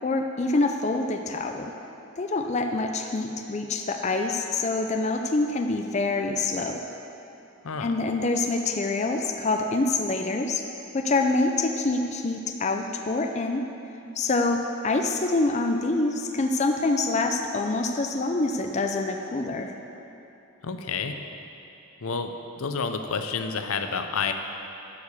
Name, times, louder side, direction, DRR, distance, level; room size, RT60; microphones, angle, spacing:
voice 1, 0.0-1.7 2.2-6.8 7.8-10.6 10.9-13.6 14.2-19.7, left 2 dB, 30° left, 4 dB, 0.4 m, -26 dB
voice 2, 20.6-21.2 22.0-24.3, left 5 dB, 80° left, 6 dB, 0.6 m, -29 dB
11.0 x 4.7 x 7.1 m, 2.9 s
head